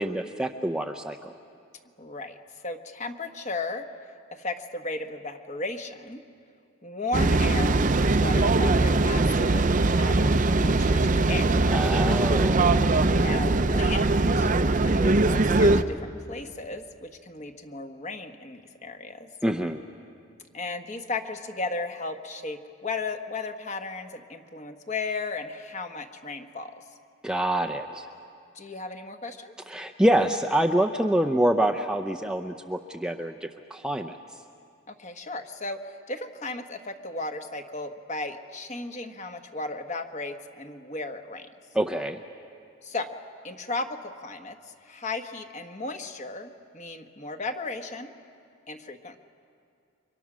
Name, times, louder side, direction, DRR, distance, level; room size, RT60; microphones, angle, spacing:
voice 1, 0.0-1.3 11.7-12.8 19.4-19.8 27.2-28.1 29.7-34.2 41.7-42.2, right 1 dB, 5° right, 5 dB, 0.6 m, -26 dB
voice 2, 2.0-2.4 2.6-3.8 4.3-6.2 6.8-9.7 10.0-11.6 13.1-14.5 14.8-19.3 20.5-26.7 28.5-29.5 34.9-41.5 42.8-43.1 43.4-44.6 44.8-48.1 48.7-49.2, left 3 dB, 35° left, 5 dB, 1.3 m, -35 dB
sound 1, 7.1-15.8, right 2 dB, 40° right, 0.7 m, -21 dB
29.5 x 24.5 x 6.2 m, 2.4 s
head